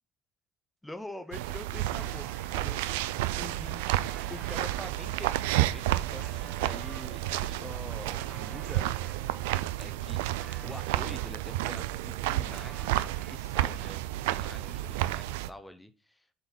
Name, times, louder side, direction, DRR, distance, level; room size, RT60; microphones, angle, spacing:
voice 1, 0.8-3.9 4.3-8.9 9.8-10.2 10.6-16.3, left 1 dB, 10° left, 10 dB, 0.9 m, -45 dB
sound 1, 0.9-1.0 1.3-2.8 3.4-9.2 9.7-11.6 11.9-13.8, right 3 dB, 20° right, 1.4 m, -53 dB
sound 2, 1.3-15.5, right 15 dB, 90° right, 0.3 m, -31 dB
sound 3, 3.1-13.1, right 5 dB, 50° right, 1.6 m, -56 dB
7.9 x 4.0 x 4.4 m, 0.32 s
supercardioid pair, 70°, 0 cm